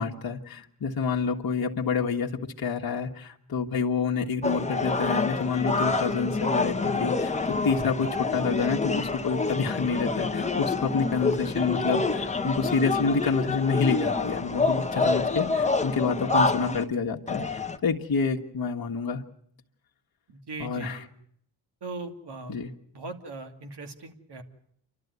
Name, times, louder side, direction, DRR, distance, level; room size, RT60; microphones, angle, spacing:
voice 1, 0.0-2.3 2.6-19.2 20.6-21.0 22.5-22.7, left 5 dB, 55° left, 0 dB, 1.5 m, -28 dB
sound 1, 4.4-16.8 17.3-17.8, left 3 dB, 15° left, 1.1 m, -27 dB
voice 2, 20.3-21.1 21.8-22.5 22.9-24.4, right 3 dB, 60° right, 6 dB, 2.5 m, -39 dB
28.0 x 12.5 x 9.4 m, 0.71 s
cardioid pair, 100°, 45 cm